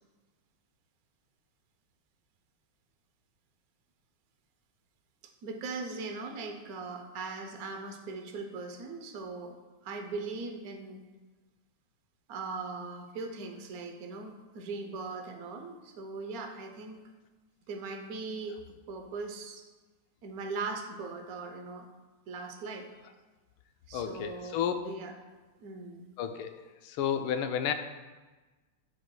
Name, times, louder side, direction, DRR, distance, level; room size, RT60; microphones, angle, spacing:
voice 1, 5.4-9.5 9.8-11.0 12.3-17.0 17.7-18.6 18.9-19.6 20.2-21.9 22.3-22.9 23.9-24.6 24.8-25.1 25.6-26.1, right 3 dB, 75° right, 4 dB, 0.8 m, -39 dB
voice 2, 23.9-24.7 26.2-27.7, left 9 dB, 75° left, 7 dB, 1.4 m, -32 dB
11.5 x 4.6 x 2.2 m, 1.3 s
omnidirectional pair, 2.4 m